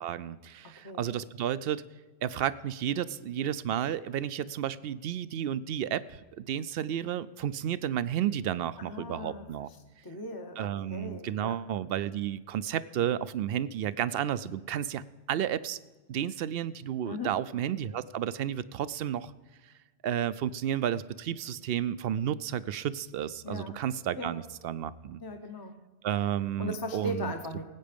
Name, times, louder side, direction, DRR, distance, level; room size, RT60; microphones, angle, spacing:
voice 1, 0.0-1.8 2.2-9.7 10.6-15.8 16.1-19.3 20.0-25.2 26.0-27.3, right 10 dB, 70° right, 17 dB, 0.7 m, -32 dB
voice 2, 0.6-1.0 8.8-9.4 10.0-11.6 17.0-17.3 23.4-23.8 24.2-24.3 25.2-25.8 26.6-27.6, left 1 dB, 25° left, 4 dB, 0.9 m, -38 dB
18.0 x 8.4 x 5.1 m, 1.3 s
omnidirectional pair, 1.1 m